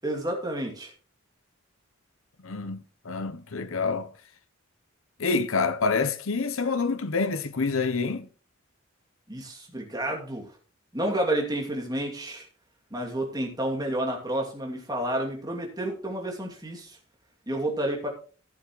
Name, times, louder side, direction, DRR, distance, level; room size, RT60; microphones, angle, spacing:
voice 1, 0.0-0.9 9.3-10.5 10.9-12.5 12.9-17.0 17.5-18.1, right 1 dB, 20° right, 2.6 m, -30 dB
voice 2, 2.4-4.1 5.2-8.3, left 4 dB, 90° left, 0.8 m, -27 dB
14.5 x 8.4 x 3.1 m
head